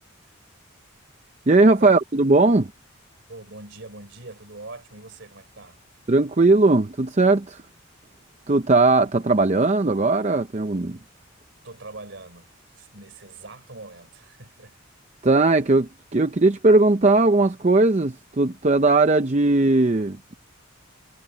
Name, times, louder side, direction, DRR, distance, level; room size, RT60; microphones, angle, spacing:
voice 1, 1.5-2.7 6.1-7.6 8.5-11.0 15.2-20.4, right 2 dB, 35° right, 0.6 m, -18 dB
voice 2, 3.3-5.8 11.6-14.8, right 2 dB, 55° right, 3.6 m, -42 dB
head